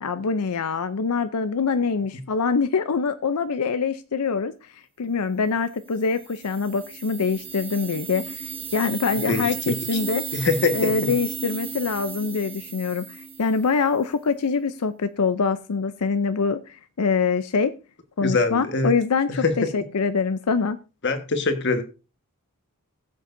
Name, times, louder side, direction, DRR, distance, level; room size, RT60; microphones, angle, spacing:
voice 1, 0.0-4.7 5.0-10.2 10.7-17.7 18.2-20.8, left 5 dB, 85° left, 11 dB, 0.6 m, -24 dB
sound 1, 5.9-13.9, right 5 dB, 25° right, 2.2 m, -35 dB
voice 2, 10.3-11.1 18.2-18.9 19.3-19.5 21.0-21.8, left 3 dB, 50° left, 7 dB, 1.5 m, -23 dB
20.5 x 7.6 x 2.6 m, 0.32 s
head